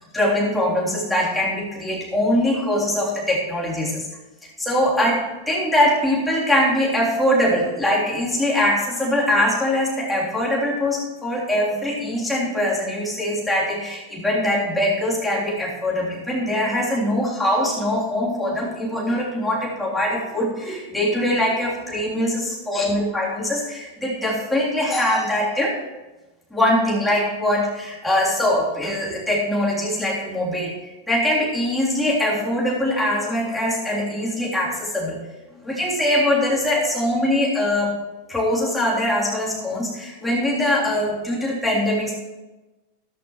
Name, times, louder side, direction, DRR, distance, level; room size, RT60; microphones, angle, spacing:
voice 1, 0.1-4.1 4.6-25.7 26.5-35.2 35.6-38.0 38.3-42.1, left 1 dB, 5° left, -5 dB, 3.4 m, -22 dB
13.5 x 13.0 x 3.1 m, 1.1 s
figure-of-eight pair, 90°, 0 cm